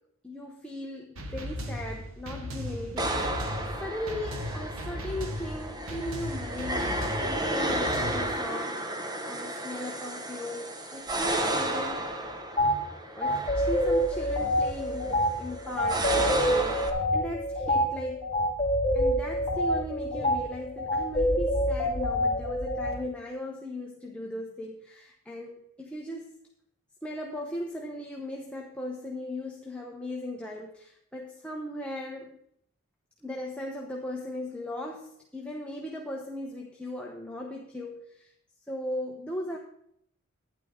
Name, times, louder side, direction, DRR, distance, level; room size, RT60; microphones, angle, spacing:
voice 1, 0.2-3.5 3.8-12.3 13.1-18.4 18.9-26.3 27.0-32.4 33.2-38.3 38.7-39.6, left 1 dB, 5° left, -1 dB, 0.9 m, -38 dB
sound 1, 1.2-8.4, equal, 80° right, 1.3 m, -37 dB
sound 2, 3.0-16.9, right 1 dB, 20° right, 0.9 m, -33 dB
sound 3, 12.6-12.8 13.2-22.9, equal, 20° left, 2.5 m, -27 dB
11.5 x 9.8 x 3.7 m, 0.71 s
head